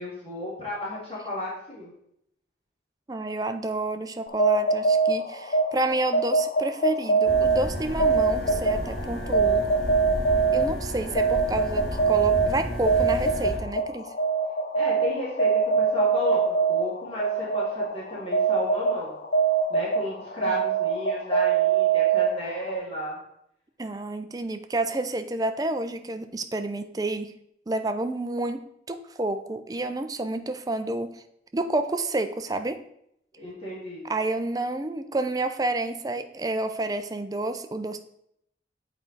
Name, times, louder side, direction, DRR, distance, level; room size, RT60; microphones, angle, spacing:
voice 1, 0.0-1.9 14.7-15.5 15.8-19.1 19.7-23.2 33.4-34.1, left 1 dB, 30° left, -7 dB, 1.9 m, -33 dB
voice 2, 3.1-9.7 10.5-14.1 23.8-27.3 27.7-31.2 31.5-32.8 34.0-38.0, right 2 dB, 20° right, 8 dB, 0.4 m, -29 dB
sound 1, 4.3-22.8, right 4 dB, 50° left, 0.6 m, -24 dB
sound 2, 7.2-13.6, equal, 5° left, 2.1 m, -33 dB
7.7 x 4.5 x 3.9 m, 0.75 s
head